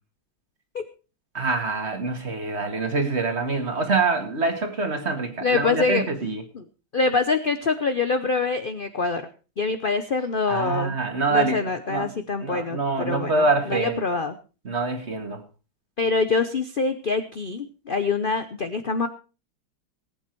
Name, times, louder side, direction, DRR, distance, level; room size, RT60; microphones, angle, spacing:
voice 1, 1.3-6.4 10.5-12.1 12.4-14.0 14.7-15.4, right 3 dB, 35° right, 7 dB, 2.0 m, -25 dB
voice 2, 5.4-6.1 6.5-6.6 6.9-9.2 9.6-11.0 11.3-14.3 16.0-19.1, left 4 dB, 55° left, 9 dB, 0.5 m, -25 dB
18.5 x 8.8 x 4.5 m, 0.34 s
omnidirectional pair, 2.1 m